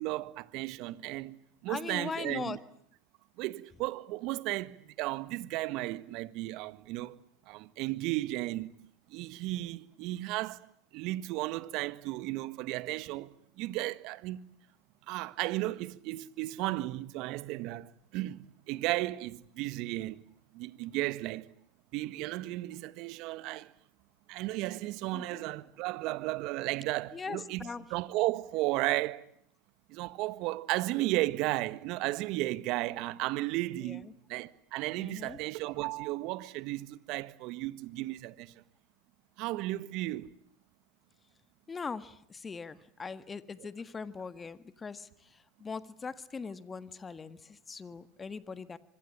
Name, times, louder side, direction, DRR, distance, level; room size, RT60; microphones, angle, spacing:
voice 1, 0.0-2.6 3.4-7.2 7.5-8.7 9.1-10.6 10.9-14.4 15.1-20.2 20.5-21.5 21.9-23.7 24.3-27.6 27.9-29.2 29.9-38.5 39.4-40.3, right 18 dB, 55° right, 1.6 m, -34 dB
voice 2, 1.7-2.6 25.1-25.4 27.1-27.8 33.8-34.1 35.0-35.4 41.7-48.8, left 5 dB, 20° left, 1.6 m, -41 dB
25.5 x 23.5 x 10.0 m
hypercardioid pair, 95°, 0 cm